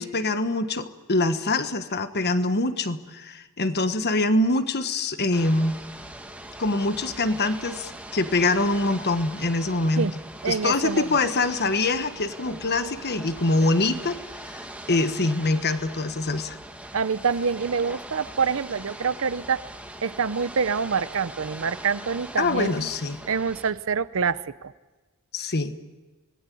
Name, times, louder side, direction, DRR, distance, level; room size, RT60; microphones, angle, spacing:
voice 1, 0.0-5.8 6.6-10.1 10.5-14.2 14.4-16.6 22.4-23.2 25.3-25.7, left 2 dB, 50° left, 10 dB, 1.4 m, -24 dB
Ocean / Boat Water vehicle, 5.3-23.7, right 1 dB, 5° right, 1.9 m, -41 dB
voice 2, 10.4-11.2 16.9-19.7 20.0-22.9 23.3-24.7, right 5 dB, 65° right, 16 dB, 0.7 m, -26 dB
26.0 x 19.5 x 8.5 m, 1.3 s
head